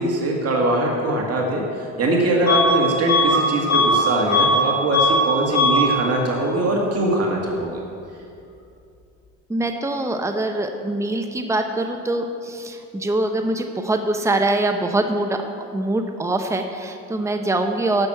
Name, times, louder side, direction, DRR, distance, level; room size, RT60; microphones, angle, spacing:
voice 1, 0.0-7.8, right 1 dB, 55° right, -1 dB, 1.9 m, -22 dB
Bus / Alarm, 2.5-2.8 3.1-4.6 4.9-5.3 5.5-5.9, left 1 dB, 60° left, 2.7 m, -18 dB
voice 2, 9.5-18.1, right 2 dB, 10° right, 5 dB, 0.9 m, -23 dB
12.0 x 6.3 x 7.7 m, 2.6 s
cardioid pair, 90°, 30 cm